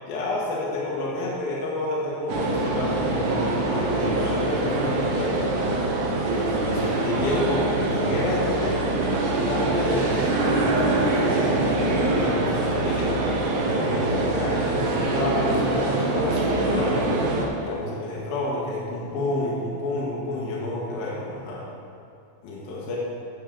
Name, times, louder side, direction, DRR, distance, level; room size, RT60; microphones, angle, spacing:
voice 1, 0.1-5.5 6.2-9.0 9.2-13.3 13.7-21.7 22.4-23.0, left 2 dB, 65° left, -5 dB, 2.9 m, -29 dB
sound 1, 2.3-17.5, right 2 dB, 85° right, 1.7 m, -24 dB
9.4 x 6.5 x 6.8 m, 2.5 s
omnidirectional pair, 5.1 m